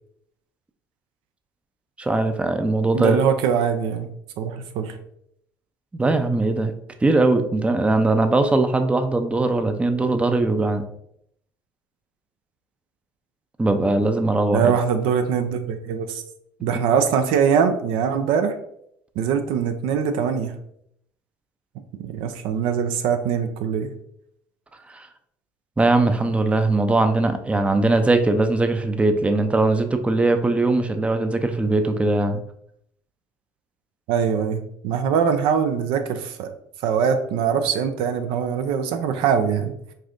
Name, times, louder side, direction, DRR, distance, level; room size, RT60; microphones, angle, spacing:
voice 1, 2.0-3.2 6.0-6.7 7.0-10.8 13.6-14.7 24.9-25.1 25.8-32.4, right 2 dB, 10° right, 8 dB, 0.5 m, -20 dB
voice 2, 2.9-4.1 4.4-5.0 14.5-16.2 16.6-18.5 19.2-20.5 22.0-23.9 34.1-36.5 36.8-39.7, right 7 dB, 65° right, 8 dB, 0.4 m, -22 dB
5.3 x 2.6 x 2.5 m, 0.73 s
hypercardioid pair, 65°, 10 cm